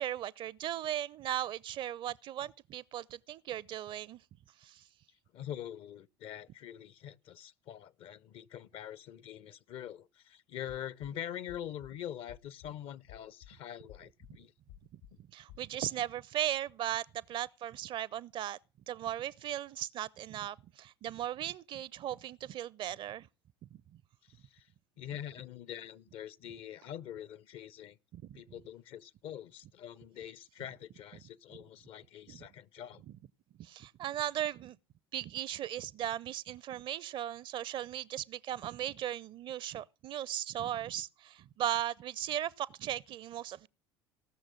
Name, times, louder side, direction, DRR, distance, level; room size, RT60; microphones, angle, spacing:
voice 1, 0.0-4.2 4.6-4.8 15.3-18.6 18.9-23.3 28.1-28.4 32.3-32.4 33.6-34.8 35.1-43.7, right 12 dB, 40° right, 0.5 m, -37 dB
voice 2, 5.3-14.5 24.3-24.7 25.0-28.0 28.3-33.0, left 10 dB, 45° left, 0.7 m, -44 dB
sound 1, 11.0-11.1 11.5-11.9 12.3-12.7 13.1-13.5 13.9-14.3 14.7-15.2 15.5-15.6, left 11 dB, 65° left, 1.4 m, -53 dB
18.0 x 6.5 x 6.3 m
figure-of-eight pair, 65°, 13 cm